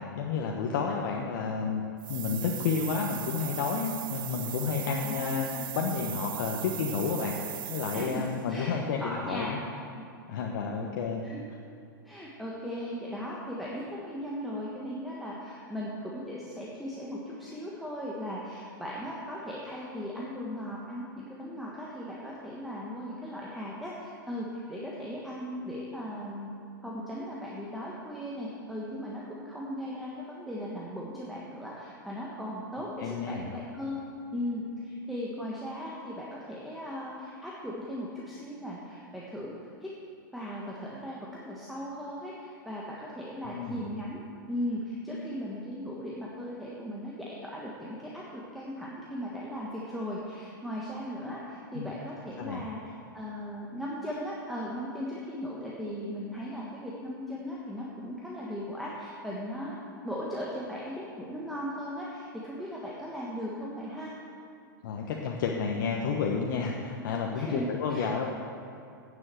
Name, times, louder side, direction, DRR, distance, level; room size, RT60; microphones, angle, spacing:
voice 1, 0.1-1.8 2.1-5.5 5.7-9.6 10.3-11.3 33.0-33.5 43.4-43.9 51.7-51.9 52.4-52.7 64.8-68.3, left 5 dB, 65° left, 0 dB, 1.1 m, -31 dB
sound 1, 2.0-8.4, right 13 dB, 75° right, 0.4 m, -39 dB
voice 2, 4.9-5.7 7.9-8.7 9.0-9.6 9.9-10.0 11.2-11.4 12.0-26.5 26.8-34.1 34.3-39.5 39.8-39.9 40.3-41.2 41.4-44.2 44.5-59.8 60.0-64.1 67.3-68.1, equal, ahead, -5 dB, 1.4 m, -37 dB
9.6 x 7.3 x 7.7 m, 2.5 s
hypercardioid pair, 125°, 11 cm